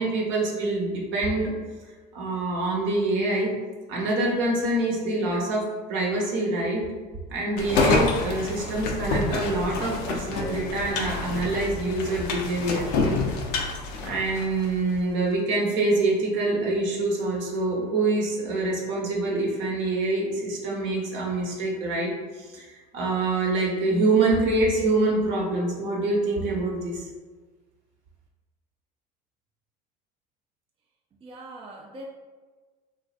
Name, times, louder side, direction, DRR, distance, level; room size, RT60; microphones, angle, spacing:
voice 1, 0.0-1.5 2.1-3.5 3.9-6.9 7.3-12.9 14.0-22.7 22.9-27.1, right 2 dB, 60° right, -2 dB, 0.9 m, -25 dB
sound 1, 7.6-14.8, left 3 dB, 80° left, 0.5 m, -28 dB
voice 2, 31.2-32.1, right 1 dB, 25° right, -1 dB, 0.4 m, -41 dB
3.0 x 2.4 x 2.4 m, 1.3 s
hypercardioid pair, 85°, 21 cm